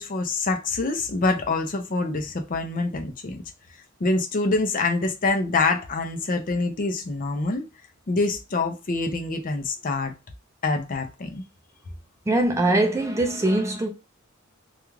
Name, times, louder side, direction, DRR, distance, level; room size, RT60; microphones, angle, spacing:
voice 1, 0.0-3.4 4.0-7.6 8.1-10.1 10.6-11.4, left 3 dB, 40° left, 0.5 m, -25 dB
voice 2, 12.3-13.9, right 1 dB, 15° right, 0.3 m, -22 dB
2.3 x 2.3 x 3.0 m
head